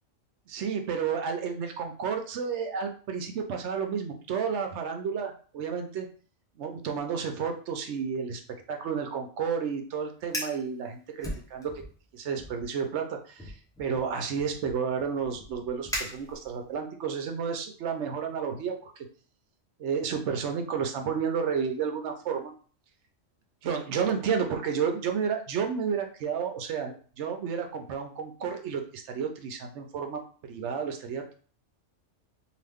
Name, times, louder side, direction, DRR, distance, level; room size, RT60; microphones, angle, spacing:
voice 1, 0.5-6.1 6.6-8.4 8.7-11.7 12.1-19.1 19.8-22.5 23.6-30.2 30.5-31.2, right 6 dB, 70° right, 5 dB, 0.9 m, -31 dB
Fire, 10.2-10.6 11.2-12.0 12.3-12.7 13.4-16.7, equal, 5° left, 0.5 m, -38 dB
2.9 x 2.4 x 3.4 m, 0.41 s
omnidirectional pair, 1.3 m